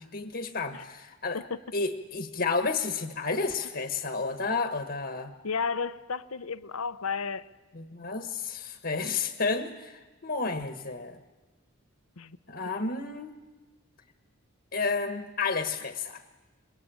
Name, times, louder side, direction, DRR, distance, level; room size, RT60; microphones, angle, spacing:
voice 1, 0.0-1.4 1.7-5.3 7.7-11.2 12.5-13.3 14.7-16.2, left 4 dB, 45° left, 8 dB, 1.3 m, -31 dB
voice 2, 5.4-7.5 12.2-12.4, left 5 dB, 85° left, 14 dB, 0.9 m, -33 dB
27.0 x 22.0 x 9.0 m, 1.2 s
head